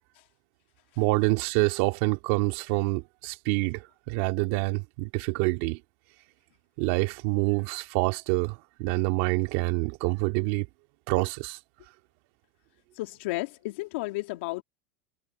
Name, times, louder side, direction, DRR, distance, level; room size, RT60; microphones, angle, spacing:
voice 1, 1.0-5.8 6.8-10.7 11.1-11.6, right 24 dB, 65° right, 2.1 m, -27 dB
voice 2, 13.0-14.6, left 21 dB, 75° left, 2.4 m, -33 dB
supercardioid pair, 115°, 6 cm